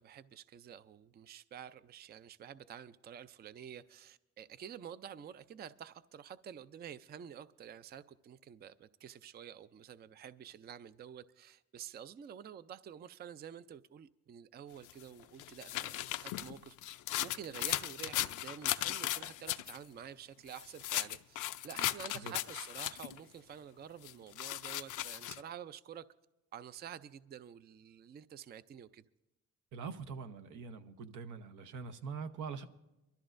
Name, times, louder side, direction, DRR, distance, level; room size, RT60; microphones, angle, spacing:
voice 1, 0.0-16.0 16.2-17.0 17.2-21.4 21.6-26.1 26.5-29.0, right 9 dB, 35° right, 0.4 m, -49 dB
sound 1, 14.9-19.8 20.5-23.2 24.0-25.4, left 14 dB, 80° left, 0.5 m, -37 dB
voice 2, 29.7-32.7, right 5 dB, 80° right, 0.9 m, -43 dB
23.5 x 13.0 x 2.5 m
cardioid pair, 90°, 30 cm